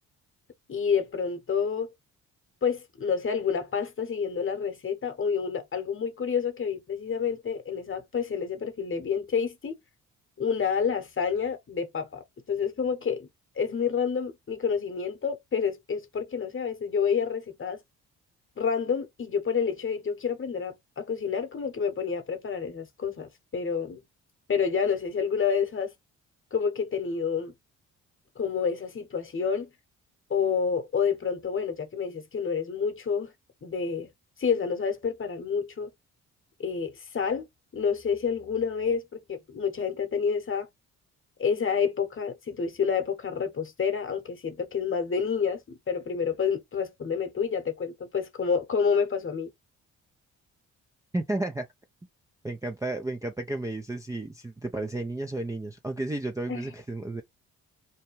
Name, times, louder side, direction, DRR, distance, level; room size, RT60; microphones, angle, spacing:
voice 1, 0.7-1.9 2.6-9.8 10.4-13.3 13.6-17.8 18.6-24.0 24.5-25.9 26.5-27.5 28.4-29.7 30.3-33.3 33.6-34.1 34.4-35.9 36.6-37.5 37.7-40.7 41.4-49.5 56.5-56.7, left 6 dB, 35° left, 1.0 m, -29 dB
voice 2, 51.1-51.7 52.4-57.2, right 2 dB, 10° right, 0.5 m, -32 dB
2.8 x 2.2 x 3.1 m
supercardioid pair, 55°, 36 cm